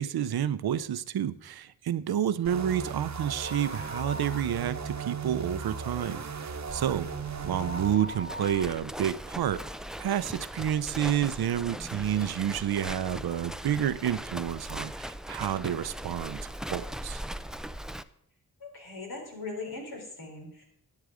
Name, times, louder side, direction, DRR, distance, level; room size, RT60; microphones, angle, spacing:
voice 1, 0.0-7.1 7.4-9.6 10.0-17.2, right 10 dB, 85° right, 15 dB, 0.6 m, -30 dB
sound 1, 2.4-8.0, right 5 dB, 45° right, 1.0 m, -37 dB
sound 2, 3.4-5.0 5.3-5.4 5.8-10.2 10.8-10.9 11.6-11.7 12.0-12.1, left 1 dB, 30° left, 0.8 m, -42 dB
Livestock farm animals working animals, 6.7-18.0, equal, ahead, 0.4 m, -40 dB
voice 2, 7.4-7.8 18.6-20.6, left 3 dB, 80° left, 1 dB, 3.6 m, -40 dB
11.5 x 9.0 x 4.9 m, 0.73 s
cardioid pair, 70°, 37 cm